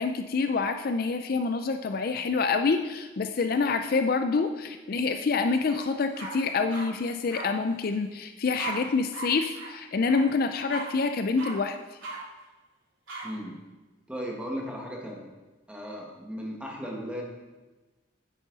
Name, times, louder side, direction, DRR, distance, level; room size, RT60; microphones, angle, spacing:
voice 1, 0.0-11.8, left 4 dB, 50° left, 8 dB, 0.4 m, -27 dB
sound 1, 5.7-5.8 6.1-6.9 7.3-7.4 8.6-8.7 9.1-9.3 9.5-9.7 10.1-10.2 10.7-10.9 11.4-11.5 12.0-12.2 13.1-13.2, right 3 dB, 80° right, 3.3 m, -37 dB
voice 2, 13.2-13.6 14.1-15.3 15.7-17.2, equal, 5° right, -1 dB, 1.6 m, -36 dB
9.4 x 8.3 x 4.0 m, 1.2 s
head